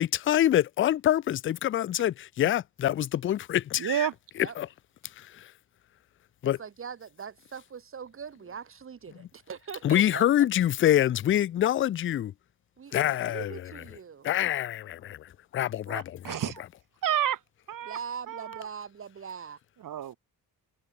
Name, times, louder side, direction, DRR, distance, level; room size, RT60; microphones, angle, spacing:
voice 1, 0.0-4.1 4.4-4.7 5.2-5.5 6.4-6.6 9.8-12.3 12.9-13.5 14.2-16.4, left 12 dB, 35° left, 0.4 m, -26 dB
voice 2, 3.8-4.1 15.9-16.6 17.0-17.4 17.7-18.0 18.3-18.6 19.8-20.2, right 11 dB, 60° right, 3.8 m, -30 dB
voice 3, 6.4-10.5 12.8-14.3 17.8-19.6, right 7 dB, 35° right, 4.0 m, -41 dB
cardioid pair, 175°, 36 cm